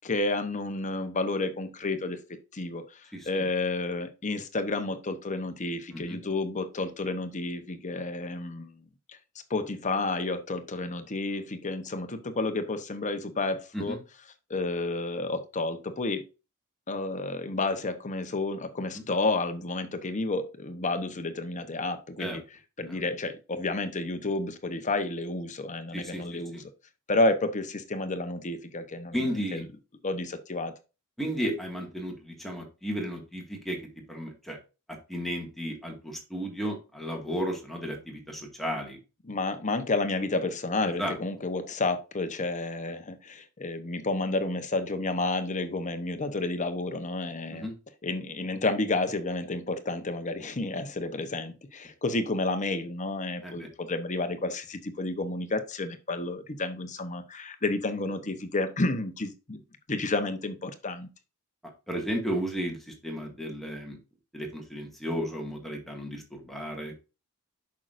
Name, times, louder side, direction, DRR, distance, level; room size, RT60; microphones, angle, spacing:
voice 1, 0.0-2.2 2.5-8.8 9.5-14.0 14.5-16.2 16.9-22.4 22.8-26.7 27.1-29.6 30.0-30.7 39.2-47.7 48.0-59.6 59.9-61.1, left 2 dB, 35° left, 9 dB, 0.9 m, -31 dB
voice 2, 3.1-3.5 5.9-6.2 13.7-14.0 18.9-19.0 22.2-22.4 22.8-23.0 25.9-26.6 29.1-29.6 31.2-33.8 34.1-34.6 35.1-39.0 40.8-41.1 47.5-47.7 53.4-53.7 61.9-64.0 64.3-67.0, equal, ahead, 0 dB, 2.0 m, -34 dB
8.4 x 6.3 x 2.6 m, 0.30 s
head